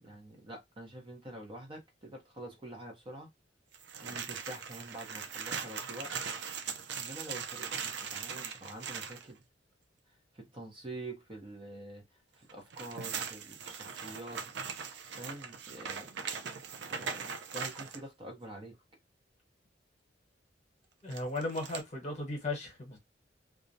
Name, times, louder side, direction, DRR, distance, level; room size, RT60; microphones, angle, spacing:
voice 1, 0.0-3.3 4.0-6.1 7.0-9.4 10.1-14.5 15.2-16.2 16.9-18.8, right 1 dB, 30° right, 0.7 m, -46 dB
sound 1, 3.7-9.2 12.5-18.0 21.1-21.8, right 6 dB, 70° right, 0.4 m, -40 dB
voice 2, 21.0-23.0, left 2 dB, 40° left, 1.0 m, -36 dB
2.3 x 2.1 x 2.6 m
head